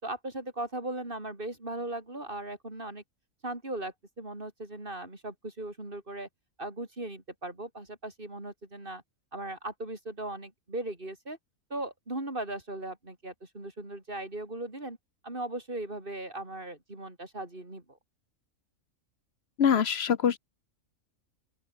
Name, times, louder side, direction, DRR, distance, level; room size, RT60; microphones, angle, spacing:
voice 1, 0.0-3.0 3.4-6.3 6.6-9.0 9.3-11.4 11.7-15.0 15.2-18.0, right 2 dB, 40° right, 4.7 m, -38 dB
voice 2, 19.6-20.4, left 7 dB, 55° left, 1.1 m, -24 dB
open air
omnidirectional pair, 1.4 m